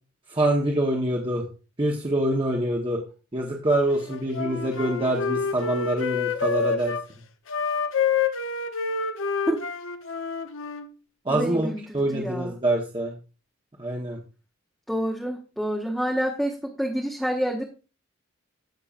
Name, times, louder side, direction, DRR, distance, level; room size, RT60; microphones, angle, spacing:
voice 1, 0.3-1.4 1.8-3.0 3.3-6.9 11.2-11.7 11.9-13.1 13.8-14.2, right 1 dB, 25° right, -1 dB, 1.1 m, -25 dB
Wind instrument woodwind instrument, 4.1-7.0 7.5-10.9, left 5 dB, 60° left, 0.8 m, -28 dB
voice 2, 11.3-12.5 14.9-17.6, equal, ahead, -1 dB, 0.9 m, -28 dB
17.0 x 5.8 x 2.4 m, 0.34 s
head